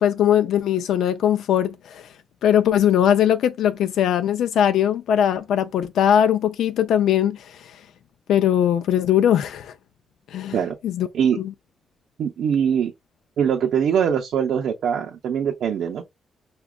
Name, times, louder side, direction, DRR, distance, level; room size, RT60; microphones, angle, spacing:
voice 1, 0.0-2.1 2.4-7.7 8.3-9.7 10.3-10.6 10.8-11.1 11.4-11.5, left 10 dB, 90° left, 0.3 m, -20 dB
voice 2, 12.2-12.9 13.4-16.0, right 8 dB, 70° right, 0.6 m, -22 dB
5.9 x 2.3 x 2.3 m
wide cardioid pair, 155°, 0 cm